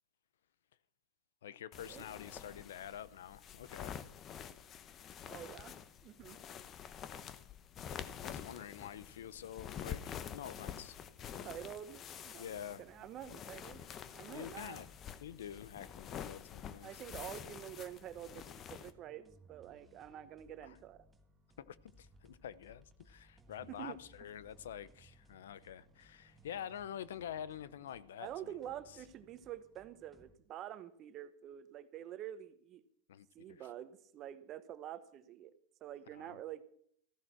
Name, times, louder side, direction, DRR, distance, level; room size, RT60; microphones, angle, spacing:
voice 1, 1.4-3.9 8.2-11.0 11.3-11.5 12.4-12.8 14.3-14.9 15.2-17.0 20.6-20.8 21.6-28.5 33.1-33.6 36.1-36.4, left 10 dB, 80° left, 0.7 m, -47 dB
sound 1, 1.7-18.9, left 8 dB, 35° left, 0.9 m, -48 dB
voice 2, 5.3-6.4 11.2-13.8 14.1-14.8 16.8-21.0 23.7-24.0 28.2-32.8 33.3-35.5 35.8-36.6, right 11 dB, 40° right, 1.1 m, -47 dB
sound 2, 10.4-30.3, right 1 dB, 10° right, 1.5 m, -65 dB
14.5 x 11.0 x 6.0 m
hypercardioid pair, 120°, 0 cm